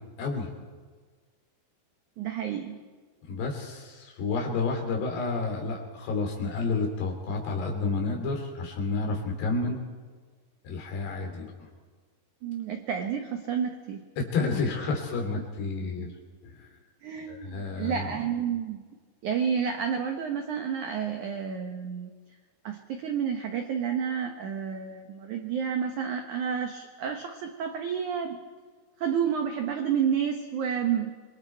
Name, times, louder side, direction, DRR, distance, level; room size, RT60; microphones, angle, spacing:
voice 1, 0.2-0.5 3.3-9.8 10.7-11.7 14.2-16.1 16.4-16.7 17.3-18.3, left 3 dB, 70° left, 1 dB, 5.1 m, -30 dB
voice 2, 2.2-2.8 12.4-14.0 15.4-15.5 16.0-16.1 17.0-18.8 19.2-22.1 22.6-28.4 29.0-31.1, right 7 dB, 80° right, 5 dB, 1.7 m, -30 dB
27.0 x 23.5 x 4.5 m, 1.5 s
omnidirectional pair, 5.1 m